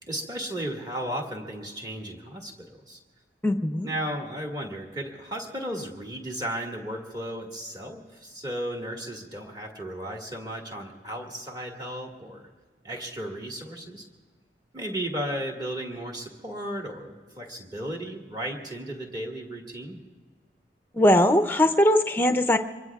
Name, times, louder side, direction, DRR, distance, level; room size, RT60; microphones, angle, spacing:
voice 1, 0.0-3.0 3.8-12.5 12.8-14.1 14.7-20.0, right 1 dB, 25° right, 0 dB, 1.9 m, -35 dB
voice 2, 3.4-3.9 20.9-22.6, left 1 dB, 10° left, 7 dB, 0.6 m, -20 dB
25.5 x 22.0 x 2.4 m, 1.4 s
head